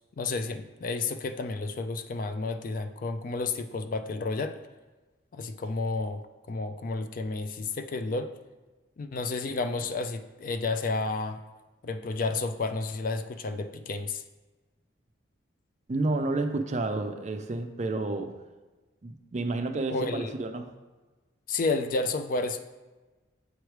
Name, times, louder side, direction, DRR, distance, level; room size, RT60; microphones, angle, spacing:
voice 1, 0.2-4.6 5.3-6.2 6.5-8.3 9.0-11.4 11.8-14.2 19.9-20.3 21.5-22.6, left 3 dB, 45° left, 8 dB, 0.3 m, -31 dB
voice 2, 15.9-18.3 19.0-20.7, right 2 dB, 35° right, 7 dB, 0.4 m, -30 dB
7.8 x 3.2 x 4.6 m, 1.2 s
head